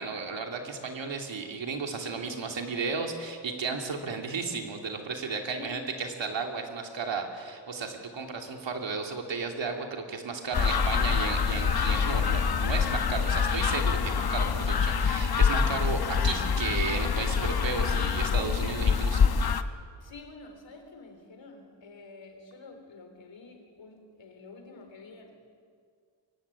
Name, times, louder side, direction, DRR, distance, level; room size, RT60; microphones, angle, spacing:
voice 1, 0.0-19.3, right 4 dB, 85° right, 3 dB, 2.9 m, -34 dB
voice 2, 5.5-5.8 19.9-25.4, left 3 dB, 85° left, 5 dB, 3.8 m, -48 dB
sound 1, 10.5-19.6, left 6 dB, 55° left, 1.1 m, -26 dB
23.5 x 16.0 x 9.9 m, 2.1 s
wide cardioid pair, 90°, 44 cm